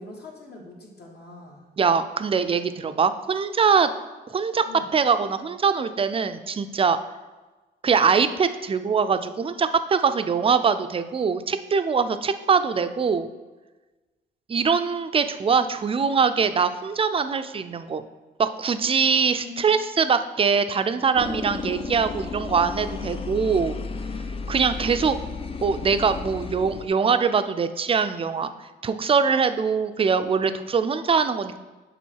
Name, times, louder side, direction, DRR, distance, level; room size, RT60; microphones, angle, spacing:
voice 1, 0.0-1.7 4.6-4.9 19.4-19.7, left 3 dB, 55° left, 0 dB, 1.5 m, -42 dB
voice 2, 1.8-3.9 4.3-7.0 7.8-13.3 14.5-18.0 18.4-23.8 24.5-25.2 25.6-28.5 28.8-31.6, right 5 dB, 30° right, 10 dB, 0.4 m, -22 dB
sound 1, 21.1-26.9, left 4 dB, 30° left, 0.5 m, -33 dB
7.1 x 4.1 x 4.6 m, 1.2 s
cardioid pair, 90°, 20 cm